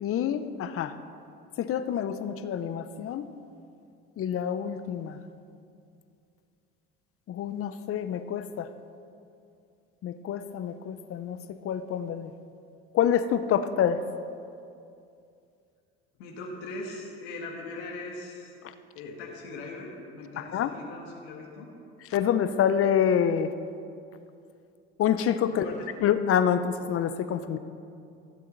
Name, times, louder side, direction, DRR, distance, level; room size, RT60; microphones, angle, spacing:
voice 1, 0.0-0.9 1.6-3.3 4.2-5.2 7.3-8.7 10.0-11.4 11.6-12.3 12.9-14.0 20.4-20.7 22.1-23.5 25.0-25.7 26.0-27.6, left 9 dB, 45° left, 11 dB, 0.7 m, -27 dB
voice 2, 16.2-18.5 19.0-21.7 25.5-25.9, left 2 dB, 80° left, -1 dB, 1.7 m, -40 dB
15.5 x 7.5 x 3.9 m, 2.5 s
supercardioid pair, 85°, 33 cm